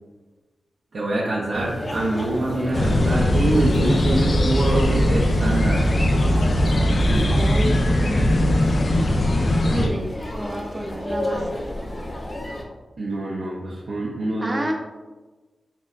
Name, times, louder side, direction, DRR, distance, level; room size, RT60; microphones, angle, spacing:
voice 1, 0.9-5.9 7.1-7.7 13.0-14.7, right 2 dB, 70° right, -6 dB, 0.7 m, -25 dB
sound 1, 1.5-12.6, left 1 dB, 30° left, 0.8 m, -32 dB
sound 2, 2.7-9.9, left 1 dB, 55° left, 0.5 m, -20 dB
voice 2, 7.3-9.2 9.7-11.7 14.4-14.7, equal, 25° right, 1 dB, 0.6 m, -30 dB
4.5 x 4.2 x 2.5 m, 1.2 s
wide cardioid pair, 110°, 0 cm